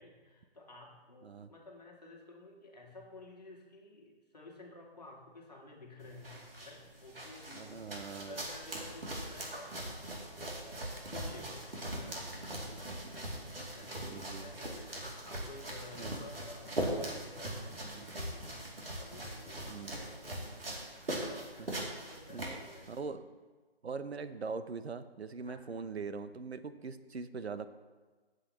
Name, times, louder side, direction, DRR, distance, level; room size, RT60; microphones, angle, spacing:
voice 1, 0.0-21.8 22.0-23.0 25.4-25.7, left 2 dB, 40° left, 0 dB, 1.7 m, -53 dB
sound 1, 6.0-23.0, right 1 dB, 65° right, 2.7 m, -41 dB
voice 2, 7.5-8.4 12.7-13.1 14.1-14.5 16.0-16.3 17.8-18.1 19.7-20.0 21.6-21.7 22.3-22.6 22.9-23.2 23.8-27.7, right 4 dB, 80° right, 12 dB, 0.8 m, -42 dB
16.0 x 7.6 x 3.0 m, 1.3 s
hypercardioid pair, 180°, 32 cm